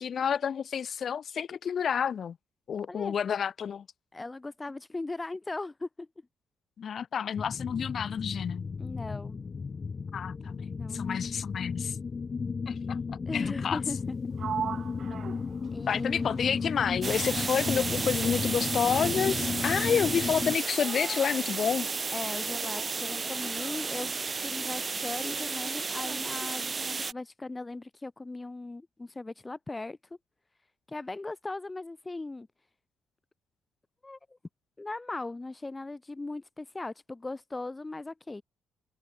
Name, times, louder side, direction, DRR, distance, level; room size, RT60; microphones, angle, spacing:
voice 1, 0.0-2.4 2.7-3.8 6.8-8.6 10.1-12.0 12.7-13.0 13.3-13.8 15.9-21.9, left 7 dB, 55° left, 1.5 m, -29 dB
voice 2, 4.1-6.1 8.8-9.4 10.7-11.2 13.3-14.2 15.7-16.6 22.1-30.0 30.9-32.5 34.0-34.2 34.8-38.4, left 2 dB, 20° left, 1.1 m, -38 dB
sound 1, 7.4-20.6, left 5 dB, 35° left, 2.4 m, -34 dB
Sliding door, 14.4-18.0 18.2-19.5, right 8 dB, 55° right, 2.9 m, -40 dB
sound 2, 17.0-27.1, right 4 dB, 30° right, 1.2 m, -33 dB
cardioid pair, 90°, 0 cm